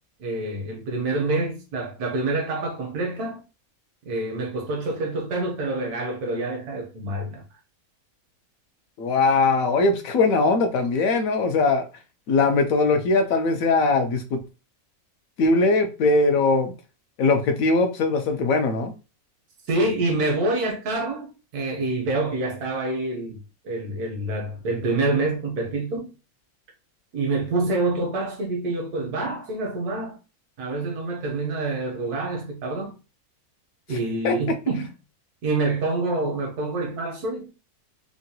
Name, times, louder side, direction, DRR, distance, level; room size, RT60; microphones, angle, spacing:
voice 1, 0.2-3.4 4.0-7.4 19.7-23.4 23.6-26.1 27.1-30.2 30.6-32.9 33.9-34.9 35.4-37.5, right 2 dB, 85° right, 1.4 m, -27 dB
voice 2, 9.0-11.8 12.3-14.4 15.4-16.7 17.2-18.9 33.9-34.0 34.2-34.3, left 3 dB, 70° left, 1.0 m, -20 dB
3.6 x 2.2 x 2.7 m
omnidirectional pair, 1.6 m